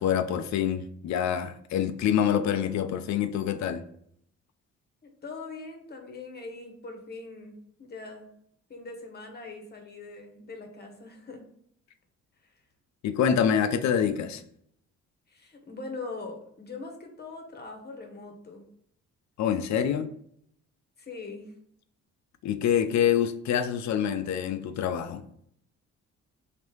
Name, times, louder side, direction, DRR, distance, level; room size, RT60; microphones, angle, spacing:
voice 1, 0.0-3.8 13.0-14.4 19.4-20.1 22.4-25.2, left 8 dB, 65° left, 0.5 m, -26 dB
voice 2, 5.2-7.5 7.8-8.3 8.7-11.4 12.4-12.5 15.3-18.6 21.0-21.5, left 3 dB, 35° left, 1.0 m, -41 dB
3.2 x 2.9 x 4.5 m
cardioid pair, 90°, 30 cm